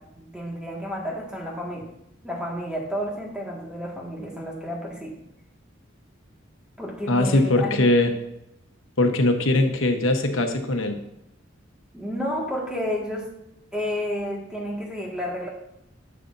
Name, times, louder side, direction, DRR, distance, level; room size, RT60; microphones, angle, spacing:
voice 1, 0.1-1.9 2.2-5.2 6.8-7.9 9.5-9.6 11.9-13.3 13.7-15.5, equal, 5° right, -2 dB, 1.8 m, -31 dB
voice 2, 7.1-8.1 9.0-11.0, left 2 dB, 85° left, 5 dB, 1.1 m, -21 dB
11.0 x 7.7 x 2.6 m, 0.83 s
head